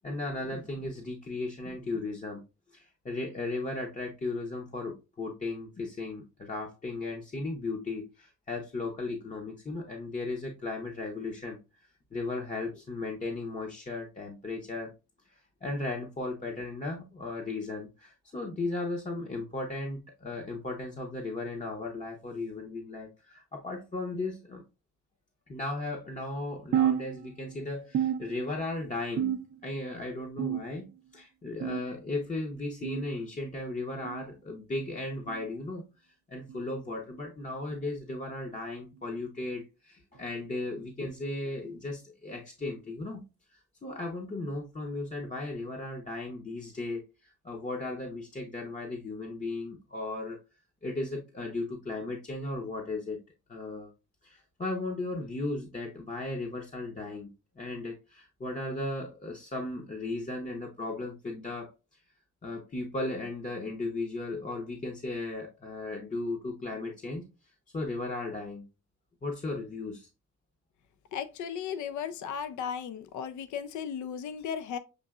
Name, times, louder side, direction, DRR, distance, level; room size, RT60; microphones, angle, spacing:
voice 1, 0.0-2.4 2.7-11.6 12.1-14.9 15.6-24.6 25.5-30.9 31.1-35.8 36.3-43.2 43.8-50.4 50.8-53.2 53.5-53.9 54.2-57.3 57.6-61.7 62.4-67.3 67.7-68.6 69.2-70.1, left 2 dB, 25° left, 0.8 m, -36 dB
sound 1, 26.7-27.6 27.9-28.7 29.2-29.8 30.4-31.0 31.6-32.0 32.8-33.1 34.0-34.3 35.3-35.5 36.5-36.7 37.7-37.9 38.9-39.1 40.1-40.2 41.4-41.5, right 9 dB, 50° right, 0.5 m, -31 dB
voice 2, 71.1-74.8, left 7 dB, 75° left, 0.5 m, -35 dB
6.6 x 2.7 x 2.3 m
cardioid pair, 90°, 30 cm